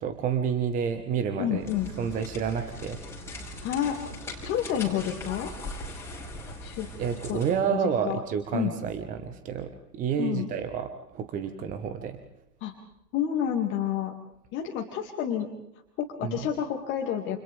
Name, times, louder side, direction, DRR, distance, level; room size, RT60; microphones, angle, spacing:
voice 1, 0.0-1.7 2.0-3.0 7.0-12.2 16.2-16.5, right 7 dB, 15° right, 8 dB, 1.4 m, -29 dB
voice 2, 1.4-1.9 3.4-4.0 4.4-5.5 6.6-6.9 7.3-7.4 8.0-8.2 8.5-8.7 10.2-10.5 12.6-12.7 13.1-14.1 14.5-15.5 16.0-17.4, left 10 dB, 25° left, 2 dB, 2.4 m, -29 dB
sound 1, 1.6-7.6, left 1 dB, 5° left, 6.4 m, -40 dB
30.0 x 29.0 x 3.6 m, 0.88 s
figure-of-eight pair, 120°, 47 cm